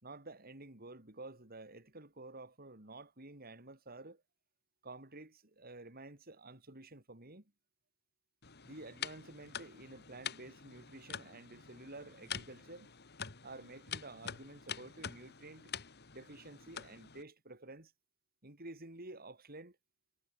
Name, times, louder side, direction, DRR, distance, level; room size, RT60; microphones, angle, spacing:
voice 1, 0.0-4.2 4.8-7.4 8.6-12.9 13.4-15.7 16.1-17.9 18.4-19.8, right 2 dB, 45° right, 4.1 m, -51 dB
sound 1, 8.4-17.2, left 8 dB, 50° left, 2.3 m, -46 dB
head